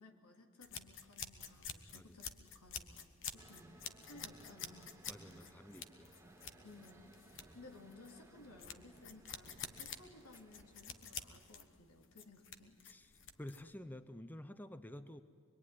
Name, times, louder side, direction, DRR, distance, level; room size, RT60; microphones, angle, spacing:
voice 1, 0.0-5.4 6.6-12.8, left 2 dB, 90° left, 4 dB, 2.9 m, -59 dB
sound 1, 0.6-13.8, left 7 dB, 60° left, 1.3 m, -49 dB
sound 2, 3.4-11.7, right 1 dB, 10° right, 2.3 m, -61 dB
voice 2, 5.1-6.2 12.8-13.1 13.4-15.2, left 1 dB, 10° left, 12 dB, 0.6 m, -50 dB
25.5 x 22.0 x 9.8 m, 2.1 s
head